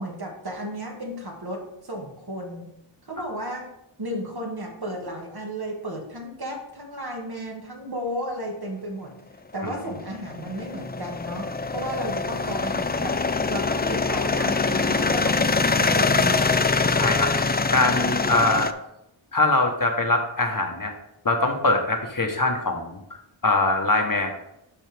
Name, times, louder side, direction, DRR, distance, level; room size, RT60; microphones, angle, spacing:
voice 1, 0.0-2.7 3.1-3.7 4.0-9.1 9.5-13.2 13.5-16.7, right 1 dB, 50° right, 0 dB, 1.8 m, -33 dB
sound 1, 9.7-18.7, left 4 dB, 20° left, 0.4 m, -24 dB
voice 2, 16.9-18.7 19.3-20.9 21.2-23.0 23.4-24.3, left 2 dB, 40° left, 3 dB, 1.2 m, -23 dB
11.5 x 4.2 x 3.5 m, 0.81 s
wide cardioid pair, 70°, 48 cm